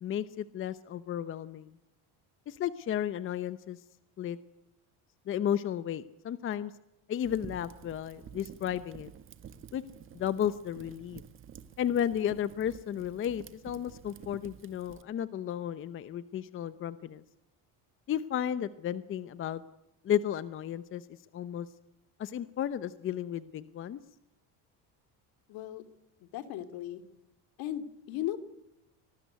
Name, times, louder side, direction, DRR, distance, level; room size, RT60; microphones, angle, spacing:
voice 1, 0.0-1.7 2.5-3.8 4.2-4.4 5.3-6.7 7.1-9.1 9.7-9.8 10.1-11.2 11.8-17.2 18.1-19.6 20.0-21.1 21.3-21.7 22.2-24.0, left 10 dB, 30° left, 15 dB, 0.8 m, -33 dB
Fire, 7.2-15.0, right 8 dB, 30° right, 1.6 m, -50 dB
voice 2, 25.5-25.8 26.2-27.0 27.6-28.4, left 12 dB, 65° left, 11 dB, 2.9 m, -36 dB
26.0 x 20.0 x 9.4 m, 0.87 s
cardioid pair, 175°, 39 cm